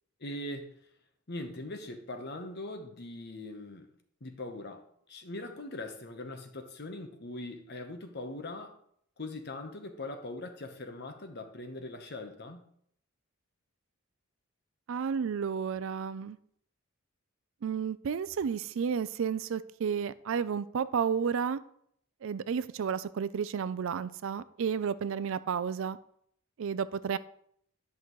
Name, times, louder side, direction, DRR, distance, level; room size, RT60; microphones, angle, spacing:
voice 1, 0.2-0.8 1.3-3.9 4.2-8.8 9.2-12.7, left 2 dB, 50° left, 6 dB, 1.0 m, -41 dB
voice 2, 14.9-16.4 17.6-21.6 22.2-26.0 26.6-27.2, right 7 dB, 65° right, 15 dB, 0.4 m, -32 dB
10.5 x 5.9 x 3.1 m, 0.66 s
head